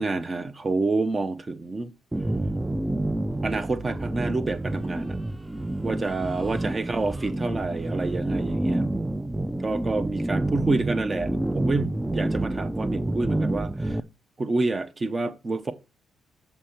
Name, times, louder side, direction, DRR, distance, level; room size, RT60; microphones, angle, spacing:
voice 1, 0.0-1.9 3.4-5.2 5.8-8.9 9.6-14.0 14.4-15.7, right 3 dB, 30° right, 0.9 m, -28 dB
sound 1, 2.1-14.0, right 1 dB, 10° right, 0.5 m, -28 dB
7.3 x 4.4 x 6.4 m
cardioid pair, 90°, 0 cm